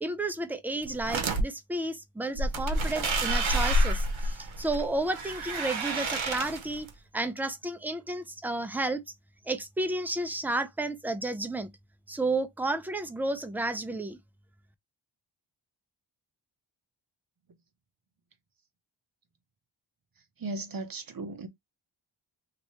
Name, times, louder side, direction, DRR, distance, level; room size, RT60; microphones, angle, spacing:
voice 1, 0.0-6.9 7.1-9.0 9.5-11.7 12.1-14.2, right 2 dB, 5° right, 0.4 m, -32 dB
sound 1, 0.8-1.4 2.4-6.9, right 1 dB, 80° right, 0.9 m, -29 dB
voice 2, 20.2-21.5, right 2 dB, 45° right, 0.8 m, -37 dB
3.0 x 2.8 x 3.0 m
wide cardioid pair, 85°, 47 cm